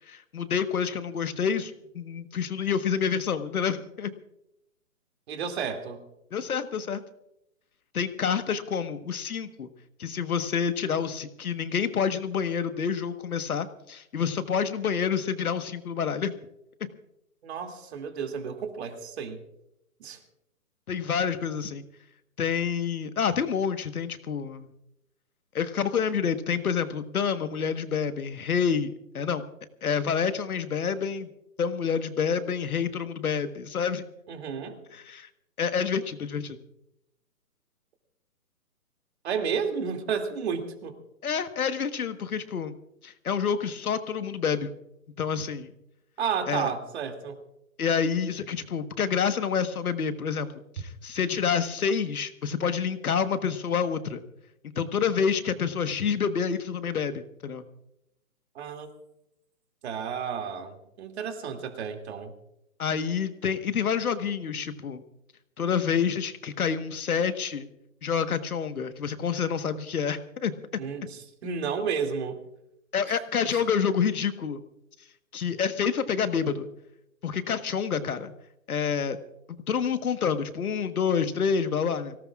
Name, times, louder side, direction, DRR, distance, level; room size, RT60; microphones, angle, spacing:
voice 1, 0.1-4.1 6.3-7.0 7.9-9.7 10.0-16.3 16.8-16.9 20.9-21.8 22.4-24.7 25.5-29.4 29.8-31.3 31.6-34.1 34.9-35.3 35.6-36.6 41.2-42.7 43.0-44.7 45.2-45.7 46.5-46.7 47.8-54.2 54.7-57.6 62.8-65.0 65.6-67.7 68.0-70.8 72.9-74.6 75.3-76.7 77.2-78.3 78.7-79.2 79.7-82.2, left 6 dB, 70° left, 10 dB, 1.5 m, -28 dB
voice 2, 5.3-6.0 17.4-19.4 20.0-20.2 34.3-34.8 39.2-41.0 46.2-47.4 58.5-58.9 59.8-62.3 70.8-72.4 73.1-73.6, right 6 dB, 45° right, 5 dB, 2.7 m, -32 dB
24.5 x 18.0 x 2.4 m, 0.83 s
hypercardioid pair, 145°, 45 cm